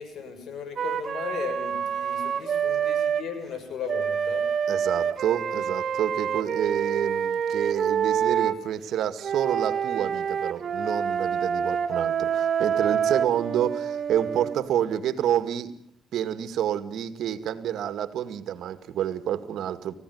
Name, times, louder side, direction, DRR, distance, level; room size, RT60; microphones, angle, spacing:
voice 1, 0.0-4.5, left 6 dB, 65° left, 6.9 m, -36 dB
Wind instrument woodwind instrument, 0.8-3.3 3.9-8.6 9.2-14.6, right 7 dB, 55° right, 1.9 m, -27 dB
voice 2, 4.7-15.7 16.1-19.9, right 10 dB, 75° right, 2.0 m, -28 dB
28.5 x 16.0 x 9.5 m
cardioid pair, 90°, 0 cm